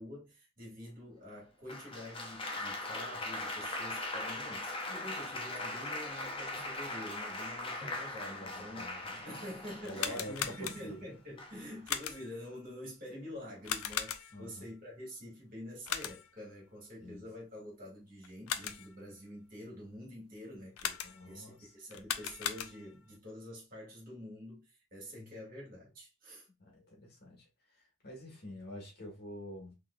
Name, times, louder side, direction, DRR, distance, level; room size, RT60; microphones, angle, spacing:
voice 1, 0.0-8.9 9.1-26.9, left 1 dB, 40° right, 1.9 m, -47 dB
Applause, 1.7-10.5 11.4-11.8, left 2 dB, 25° left, 0.6 m, -40 dB
voice 2, 8.4-9.2 9.8-11.0 11.5-11.7 14.3-14.7 17.0-17.3 21.0-21.7 25.1-25.4 26.6-29.7, equal, 45° left, 1.6 m, -47 dB
sound 1, 9.8-11.1 11.9-12.4 13.6-14.5 15.9-16.4 18.2-19.0 20.8-21.4 21.9-23.0, left 9 dB, 75° left, 0.5 m, -38 dB
3.8 x 3.1 x 2.3 m
head